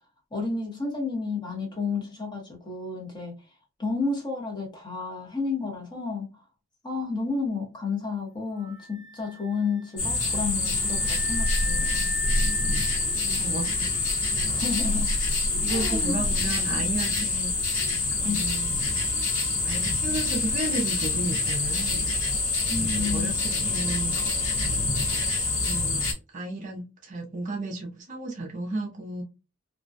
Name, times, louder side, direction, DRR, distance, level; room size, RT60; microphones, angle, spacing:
voice 1, 0.3-3.3 3.8-6.3 6.8-12.1 14.5-15.1 15.7-16.3 18.2-18.4 22.7-23.3, left 4 dB, 20° left, 0.8 m, -31 dB
Wind instrument woodwind instrument, 8.6-16.0, left 1 dB, 55° left, 0.7 m, -41 dB
sound 1, 10.0-26.1, left 3 dB, 80° left, 1.0 m, -26 dB
voice 2, 12.4-12.9 13.2-13.9 15.6-17.6 18.1-18.7 19.6-22.0 22.8-24.1 25.6-26.0 26.3-29.2, right 2 dB, 35° right, 0.5 m, -33 dB
2.3 x 2.1 x 2.4 m
head